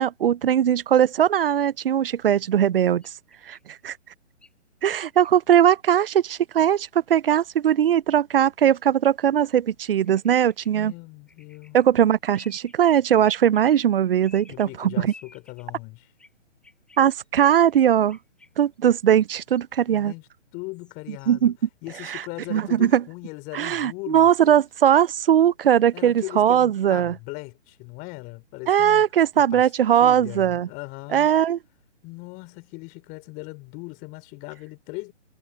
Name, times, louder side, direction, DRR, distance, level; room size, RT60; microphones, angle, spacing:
voice 1, 0.0-3.1 3.5-4.0 4.8-10.9 11.7-15.1 17.0-18.2 18.6-20.1 21.3-21.5 22.1-22.2 22.5-23.0 23.5-27.1 28.7-30.7 31.1-31.6, right 10 dB, 50° right, 0.5 m, -20 dB
sound 1, 3.0-3.8 4.4-4.5 4.9-5.3 6.0-6.2 6.4-6.7 7.3-7.7 8.6-8.8 10.1-10.8 11.3-11.9 12.3-13.6 14.2-14.7 15.1-15.7 16.2-16.3 16.6-18.7 19.2-19.6 20.7-21.4, left 3 dB, 5° left, 0.9 m, -54 dB
voice 2, 10.7-11.8 14.5-16.1 19.9-20.3 20.5-21.5 21.8-24.3 25.9-29.0 29.5-29.6 29.9-31.3 32.0-35.1, left 27 dB, 25° left, 3.1 m, -39 dB
figure-of-eight pair, 130°, 37 cm